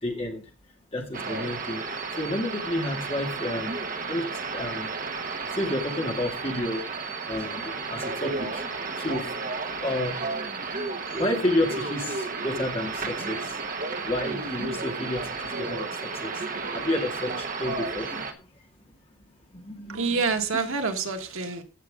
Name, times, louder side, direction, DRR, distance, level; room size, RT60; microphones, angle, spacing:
voice 1, 0.0-0.4 0.9-4.9 5.4-6.8 7.3-10.3 11.1-13.6 14.0-18.3 19.5-20.0, left 1 dB, 30° left, 2.3 m, -31 dB
sound 1, 1.1-18.3, right 4 dB, 40° right, 1.1 m, -33 dB
voice 2, 19.9-21.6, right 4 dB, 85° right, 1.6 m, -27 dB
15.5 x 6.3 x 3.7 m
head